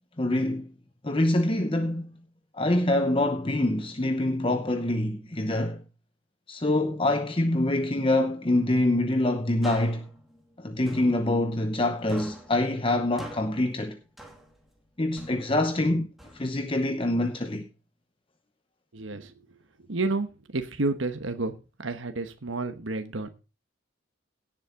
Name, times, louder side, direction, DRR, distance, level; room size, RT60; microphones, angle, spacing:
voice 1, 0.2-0.7 1.0-2.2 2.5-5.8 6.5-10.1 10.6-14.0 15.0-17.7, left 1 dB, 25° left, 0.8 m, -25 dB
subiendo una escalera de metal, 9.6-11.8 12.1-14.8 15.2-16.8, equal, ahead, 2.4 m, -45 dB
voice 2, 18.9-19.3 19.9-21.5 21.8-23.3, right 3 dB, 75° right, 1.2 m, -30 dB
17.0 x 7.5 x 3.7 m
head